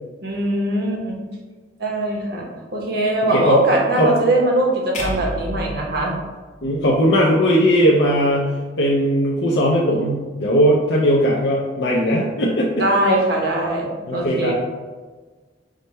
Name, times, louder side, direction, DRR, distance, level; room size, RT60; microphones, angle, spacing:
voice 1, 0.2-1.2 1.8-2.5 2.7-6.1 12.8-14.5, right 1 dB, 60° right, -1 dB, 0.9 m, -20 dB
sound 1, 4.9-7.2, equal, 40° left, 0.8 m, -31 dB
voice 2, 6.6-12.7 14.1-14.5, equal, 75° left, -5 dB, 0.6 m, -18 dB
5.0 x 2.2 x 4.1 m, 1.4 s
head